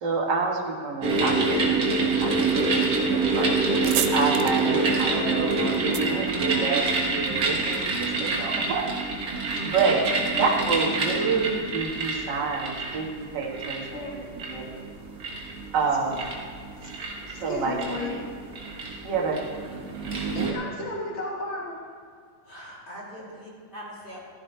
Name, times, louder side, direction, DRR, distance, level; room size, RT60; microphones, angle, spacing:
voice 1, 0.0-3.6 4.1-8.9 9.6-10.1 10.4-14.0 14.5-14.7 15.7-16.2 17.4-17.7 18.1-18.2 19.0-19.4, right 4 dB, 40° right, -2 dB, 1.8 m, -28 dB
sound 1, 1.0-20.5, right 3 dB, 70° right, 0.8 m, -27 dB
sound 2, 3.8-7.2, right 11 dB, 90° right, 2.5 m, -33 dB
voice 2, 6.1-6.5 9.9-10.0 13.9-14.1 16.8-16.9 17.3-18.2 20.3-21.8, left 2 dB, 85° left, -2 dB, 0.6 m, -34 dB
voice 3, 22.4-24.2, equal, 15° left, -6 dB, 2.7 m, -42 dB
15.0 x 14.0 x 3.4 m, 2.1 s
omnidirectional pair, 4.1 m